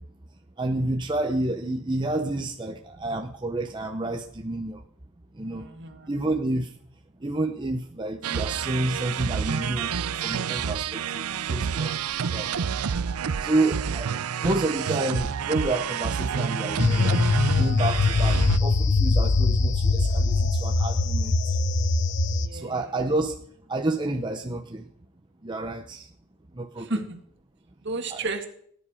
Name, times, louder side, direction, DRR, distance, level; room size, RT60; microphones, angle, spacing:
voice 1, 0.6-4.8 5.4-5.7 6.1-6.7 7.2-9.9 10.2-11.9 12.2-12.5 13.4-14.2 14.4-17.3 17.5-21.6 22.5-23.3 23.7-24.8 25.4-26.1 26.6-26.9 28.1-28.2, right 2 dB, 20° right, 4 dB, 0.7 m, -29 dB
voice 2, 5.4-6.1 22.2-22.7 26.8-27.2 27.8-28.4, right 3 dB, 55° right, 5 dB, 2.0 m, -33 dB
sound 1, 8.2-18.6, right 7 dB, 80° right, 0.5 m, -29 dB
sound 2, 16.8-22.5, left 3 dB, 55° left, 0.9 m, -22 dB
19.0 x 10.0 x 4.9 m, 0.65 s
head